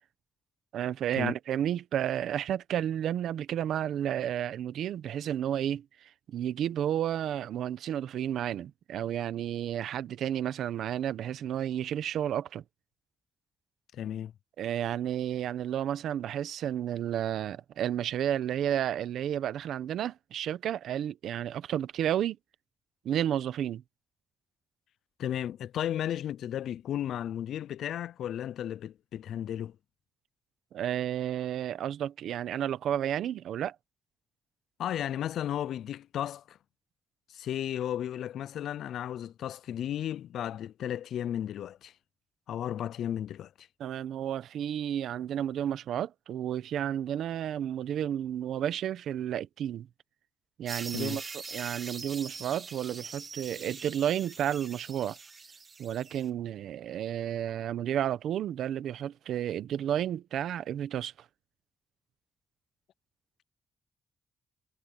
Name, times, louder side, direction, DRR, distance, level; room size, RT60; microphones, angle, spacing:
voice 1, 0.7-12.6 14.6-22.4 23.0-23.8 30.7-33.7 43.8-49.9 50.6-55.2 55.8-61.1, right 10 dB, 85° right, 0.9 m, -32 dB
voice 2, 13.9-14.3 25.2-29.8 34.8-36.6 37.3-41.9 42.5-43.7 50.9-51.2, left 10 dB, 90° left, 0.3 m, -34 dB
sound 1, 50.7-56.3, right 4 dB, 40° right, 1.8 m, -43 dB
cardioid pair, 85°, 0 cm